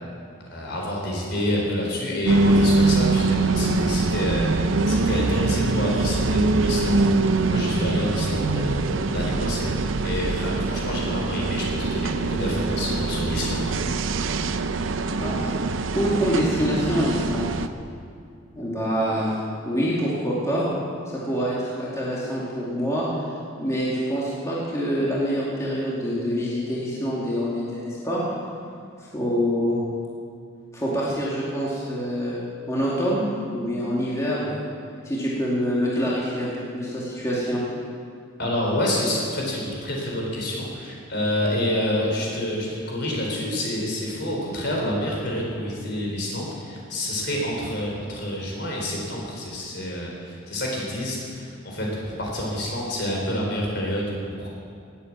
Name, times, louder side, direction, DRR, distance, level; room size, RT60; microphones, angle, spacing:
voice 1, 0.5-9.7 10.0-14.0 38.4-54.5, left 1 dB, 55° left, -2 dB, 4.4 m, -28 dB
sound 1, 2.3-17.7, right 3 dB, 70° right, 0.7 m, -23 dB
voice 2, 15.2-15.5 15.9-17.5 18.5-19.4 19.6-20.7 21.1-23.1 23.6-28.2 29.0-29.8 30.7-34.6 35.0-37.6, equal, 15° left, -7 dB, 2.5 m, -26 dB
19.0 x 8.4 x 7.5 m, 2.3 s
head